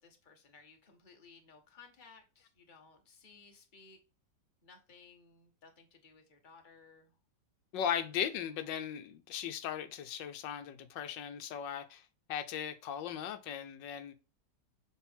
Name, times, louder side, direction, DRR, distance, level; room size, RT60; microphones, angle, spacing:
voice 1, 0.0-4.0 4.6-7.1, left 5 dB, 30° left, 1.3 m, -59 dB
voice 2, 7.7-14.1, left 9 dB, 85° left, 1.4 m, -38 dB
7.2 x 4.0 x 3.5 m
omnidirectional pair, 1.9 m